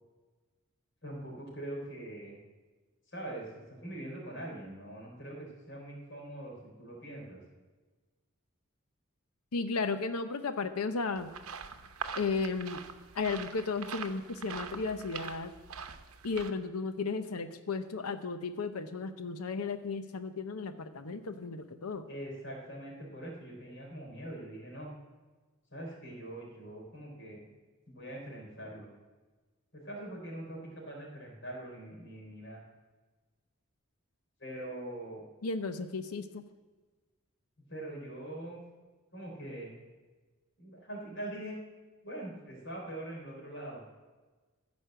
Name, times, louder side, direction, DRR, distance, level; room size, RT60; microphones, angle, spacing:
voice 1, 1.0-2.4 3.1-3.5 3.8-7.4 22.0-24.9 25.7-27.5 27.9-28.9 29.7-32.6 34.4-35.2 37.7-38.6 39.1-39.7 40.6-41.5 42.0-43.8, right 1 dB, 55° left, -2 dB, 4.3 m, -43 dB
voice 2, 9.5-11.3 12.1-12.8 13.1-15.5 16.2-22.1 35.4-36.4, left 4 dB, 90° left, 9 dB, 0.7 m, -34 dB
sound 1, 11.2-16.5, right 6 dB, 85° right, 0.8 m, -43 dB
14.5 x 5.3 x 7.7 m, 1.3 s
head